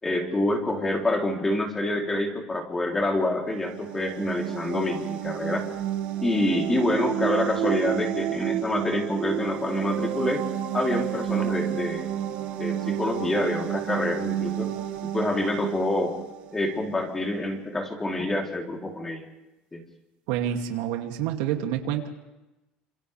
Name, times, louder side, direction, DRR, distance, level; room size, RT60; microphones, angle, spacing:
voice 1, 0.0-5.7 6.2-10.5 10.7-12.1 12.6-14.7 15.0-16.2 16.5-19.2 19.7-19.8, left 1 dB, 10° left, 1 dB, 3.3 m, -27 dB
sound 1, 3.5-17.1, right 12 dB, 65° right, 2.1 m, -31 dB
voice 2, 20.3-22.1, right 10 dB, 85° right, 4 dB, 2.5 m, -28 dB
28.5 x 26.5 x 3.4 m, 1.0 s
cardioid pair, 165°, 3 cm